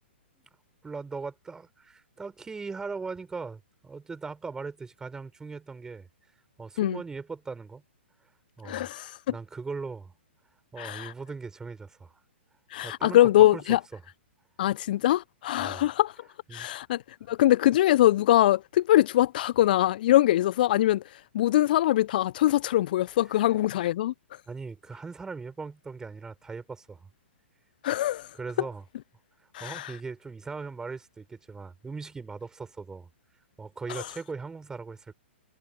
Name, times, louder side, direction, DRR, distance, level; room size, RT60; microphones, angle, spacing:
voice 1, 0.8-6.1 6.6-7.8 8.6-8.9 9.3-10.1 10.7-12.2 12.8-13.6 13.9-14.0 15.6-15.9 16.5-16.7 24.5-27.1 28.3-28.8 29.6-33.1 33.6-35.1, right 4 dB, 10° right, 5.3 m, -39 dB
voice 2, 8.6-9.2 10.8-11.1 12.7-13.8 14.6-16.1 16.5-17.0 17.3-21.0 21.3-24.1 27.8-28.3 29.5-29.9 33.9-34.1, left 14 dB, 50° left, 0.8 m, -23 dB
figure-of-eight pair, 115°, 6 cm